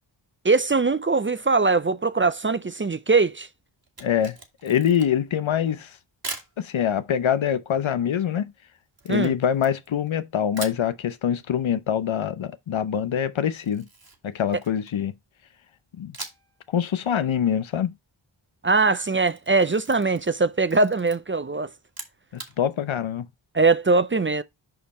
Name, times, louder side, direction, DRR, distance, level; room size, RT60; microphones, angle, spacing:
voice 1, 0.4-3.5 9.1-9.3 18.6-21.7 23.5-24.4, right 3 dB, 25° right, 0.5 m, -21 dB
Camera, 3.8-5.3 6.2-6.5 9.0-10.1 10.5-10.9 13.5-15.0 16.1-16.6 16.9-17.0 19.0-20.4 20.7-21.2 21.8-22.5, right 3 dB, 45° right, 2.4 m, -40 dB
voice 2, 4.0-4.4 4.6-6.0 6.6-8.5 9.0-13.9 14.2-15.1 16.0-16.2 16.7-17.9 22.3-23.3, left 9 dB, 75° left, 0.8 m, -24 dB
5.9 x 5.2 x 4.2 m
cardioid pair, 45°, 48 cm